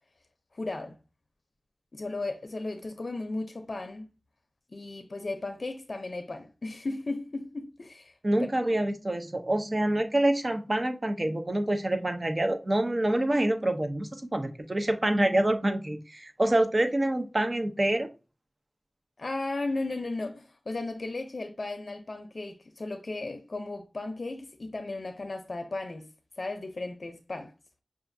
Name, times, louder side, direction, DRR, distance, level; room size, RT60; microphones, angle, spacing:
voice 1, 0.5-1.0 1.9-4.1 4.7-8.1 19.2-26.1 26.4-27.5, left 2 dB, 60° left, 0.5 m, -35 dB
voice 2, 8.2-18.1, right 1 dB, 40° right, 0.7 m, -26 dB
5.7 x 2.5 x 2.6 m
wide cardioid pair, 55°, 0 cm